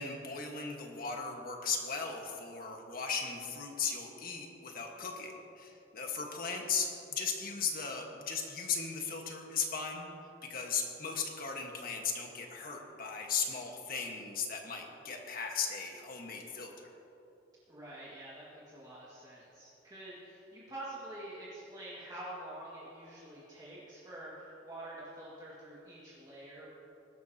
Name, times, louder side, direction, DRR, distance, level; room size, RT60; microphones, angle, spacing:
voice 1, 0.0-10.1 10.4-16.9, left 5 dB, 50° left, 2 dB, 1.5 m, -37 dB
voice 2, 17.7-26.6, right 1 dB, 20° right, -9 dB, 2.1 m, -47 dB
20.0 x 12.0 x 2.9 m, 2.9 s
head